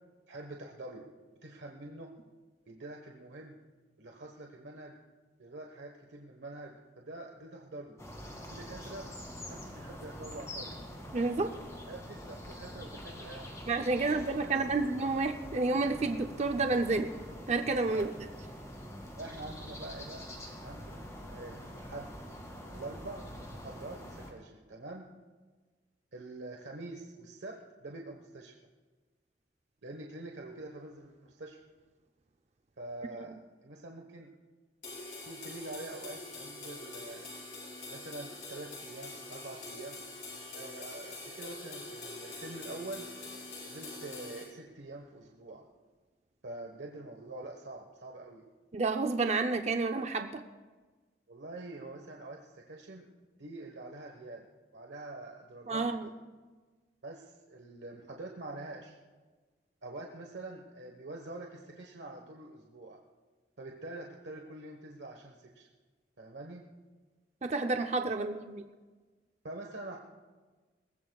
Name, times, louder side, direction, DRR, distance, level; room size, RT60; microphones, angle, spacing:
voice 1, 0.3-1.1 1.4-2.1 2.7-3.6 4.0-5.0 5.4-8.0 8.5-9.1 9.5-10.8 11.9-13.5 14.1-14.8 17.9-18.1 19.1-20.3 20.6-22.2 22.6-23.2 23.5-25.1 26.1-28.5 29.8-31.6 32.8-33.3 33.6-34.3 35.3-37.3 37.9-40.0 40.5-43.1 43.6-45.6 46.4-48.4 51.3-53.1 53.4-54.5 54.7-56.2 57.0-59.0 59.8-63.0 63.6-65.7 66.2-66.6 68.0-68.3 69.4-70.0, right 2 dB, 85° right, 1 dB, 1.3 m, -45 dB
sound 1, 8.0-24.3, equal, 15° left, 2.2 m, -45 dB
voice 2, 11.1-11.5 13.7-17.1 17.5-18.1 48.7-50.4 55.7-56.1 67.4-68.6, right 3 dB, 40° right, 6 dB, 0.6 m, -30 dB
sound 2, 34.8-44.4, left 2 dB, 45° left, 6.2 m, -45 dB
22.5 x 19.0 x 2.3 m, 1.3 s
head